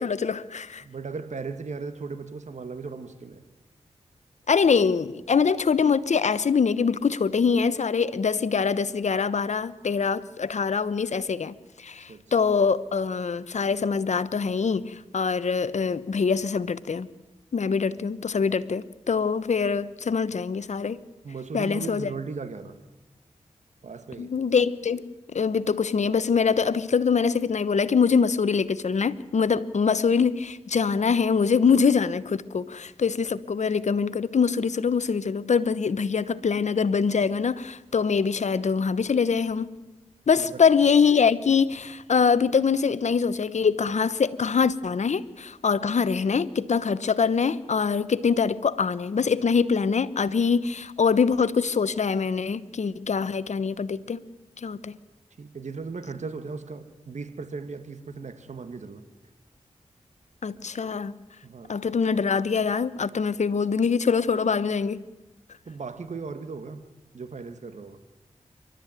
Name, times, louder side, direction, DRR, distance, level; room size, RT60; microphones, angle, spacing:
voice 1, 0.0-0.8 4.5-17.1 17.5-21.0 21.5-22.1 24.2-39.7 40.3-54.2 54.6-55.0 60.4-61.1 61.7-65.0, left 5 dB, 65° left, 1.0 m, -24 dB
voice 2, 0.8-3.4 12.1-12.2 21.2-22.8 23.8-24.3 40.4-40.6 55.4-59.0 61.4-61.8 65.7-66.8 67.1-68.0, right 4 dB, 65° right, 1.9 m, -37 dB
27.0 x 13.0 x 9.1 m
cardioid pair, 45°, 13 cm